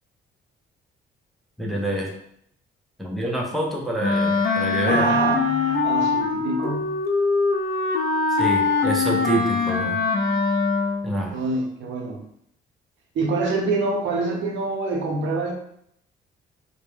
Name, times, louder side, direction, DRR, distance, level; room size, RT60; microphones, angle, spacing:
voice 1, 1.6-2.1 3.0-5.1 8.4-10.0 11.0-11.4, right 1 dB, ahead, -2 dB, 0.5 m, -27 dB
Wind instrument woodwind instrument, 4.0-11.2, left 3 dB, 50° left, 0.5 m, -22 dB
voice 2, 4.8-6.8 11.3-12.2 13.1-15.5, right 3 dB, 75° right, 1 dB, 0.6 m, -26 dB
2.1 x 2.0 x 3.1 m, 0.71 s
cardioid pair, 90°, 20 cm